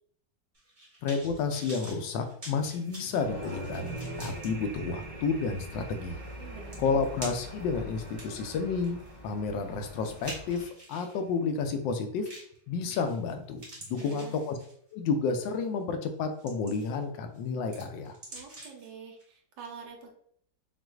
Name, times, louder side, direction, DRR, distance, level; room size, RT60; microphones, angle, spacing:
sound 1, 0.5-4.5 5.0-5.1 6.3-6.4 6.7-7.6 8.1-11.2 12.3-12.6 12.9-13.3 13.6-14.9 15.4-15.7 16.1-17.0 17.3-18.9 19.2-19.3, right 1 dB, 25° right, 1.5 m, -46 dB
voice 1, 1.0-6.2 6.8-12.3 12.7-14.5 14.9-18.2, left 5 dB, 85° left, 6 dB, 1.3 m, -31 dB
sound 2, 2.6-11.9, right 3 dB, 50° right, 0.6 m, -52 dB
sound 3, 3.2-10.6, right 1 dB, 40° left, 0.6 m, -42 dB
voice 2, 6.4-7.1 13.9-14.4 18.3-20.1, right 5 dB, 75° right, 1 dB, 1.4 m, -46 dB
5.9 x 2.5 x 2.4 m, 0.63 s
omnidirectional pair, 2.0 m